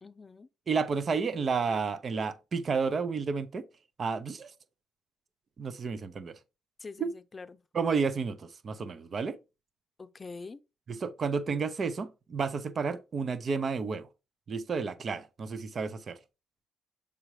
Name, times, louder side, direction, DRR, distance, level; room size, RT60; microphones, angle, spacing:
voice 1, 0.0-0.5 6.8-7.6 10.0-10.6, left 4 dB, 30° left, 0.6 m, -45 dB
voice 2, 0.7-3.7 4.0-4.5 5.6-6.4 7.0-7.1 7.7-9.4 10.9-14.1 14.5-16.2, right 5 dB, 45° right, 0.7 m, -31 dB
6.9 x 4.9 x 3.2 m
cardioid pair, 90°, 0 cm